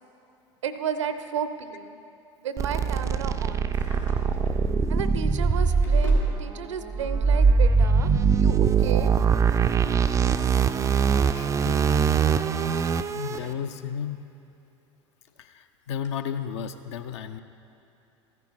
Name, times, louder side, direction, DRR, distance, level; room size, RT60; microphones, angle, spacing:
voice 1, 0.6-2.0 2.4-3.7 4.9-9.1, right 7 dB, 75° right, 10 dB, 0.6 m, -33 dB
sound 1, 2.6-13.4, right 5 dB, 20° right, 0.3 m, -22 dB
Drawer open or close, 3.5-4.6 5.4-6.3 7.4-7.5 9.3-10.8 11.1-11.5 12.0-13.7 14.1-14.2 14.9-15.0 15.3-15.4 16.0-16.1, left 4 dB, 80° left, 1.8 m, -48 dB
voice 2, 11.3-11.8 12.2-12.4 13.1-14.2 15.4-17.4, left 8 dB, 65° left, 9 dB, 0.5 m, -33 dB
14.5 x 10.5 x 3.0 m, 2.9 s
figure-of-eight pair, 75°, 16 cm